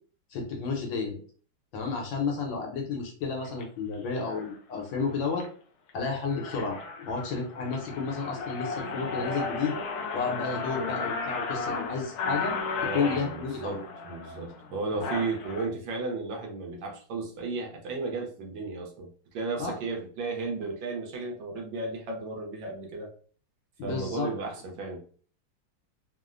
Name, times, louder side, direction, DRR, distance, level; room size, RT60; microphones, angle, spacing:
voice 1, 0.3-1.2 1.7-5.5 5.9-6.8 7.0-9.8 10.1-12.6 12.8-13.8 14.9-15.1 19.6-19.8 23.8-24.3, left 4 dB, 75° left, 1 dB, 1.4 m, -31 dB
sound 1, 3.4-3.6 4.3-4.5 5.0-5.5 5.9-6.0 6.2-15.7, left 4 dB, 90° left, 0.8 m, -34 dB
voice 2, 12.8-23.1 23.8-25.0, right 3 dB, 75° right, 1 dB, 1.3 m, -34 dB
3.5 x 2.0 x 2.4 m, 0.43 s
omnidirectional pair, 2.2 m